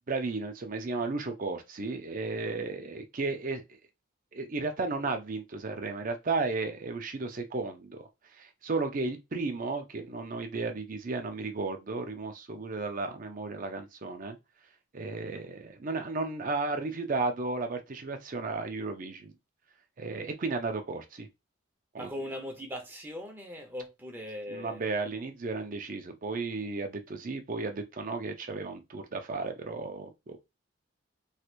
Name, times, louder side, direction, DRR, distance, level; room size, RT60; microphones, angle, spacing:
voice 1, 0.1-3.6 4.3-14.4 14.9-19.3 20.0-21.3 21.9-22.1 24.5-30.4, right 3 dB, 40° right, 0.5 m, -34 dB
voice 2, 22.0-24.9, left 1 dB, 10° right, 0.8 m, -40 dB
3.2 x 3.0 x 2.4 m
head